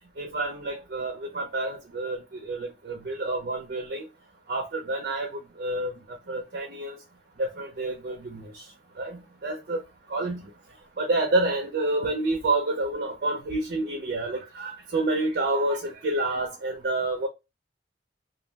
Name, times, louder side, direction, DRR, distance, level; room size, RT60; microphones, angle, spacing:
voice 1, 0.2-4.1 4.5-7.0 7.4-8.6 9.0-9.8 10.1-10.4 11.0-17.3, right 2 dB, 55° right, 0.5 m, -29 dB
2.3 x 2.1 x 3.2 m
head